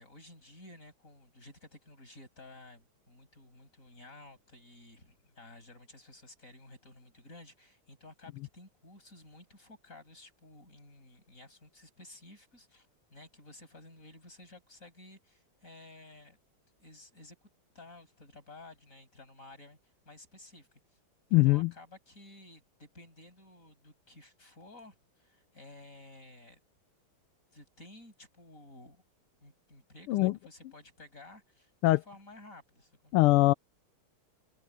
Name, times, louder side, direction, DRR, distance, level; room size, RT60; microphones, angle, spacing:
voice 1, 0.0-16.4 16.8-17.5 17.7-19.8 20.0-20.7 21.4-26.6 27.5-29.0 29.4-33.1, left 2 dB, 35° left, 7.4 m, -54 dB
voice 2, 21.3-21.7 30.1-30.3 31.8-32.0 33.1-33.5, left 19 dB, 85° left, 1.6 m, -22 dB
omnidirectional pair, 2.4 m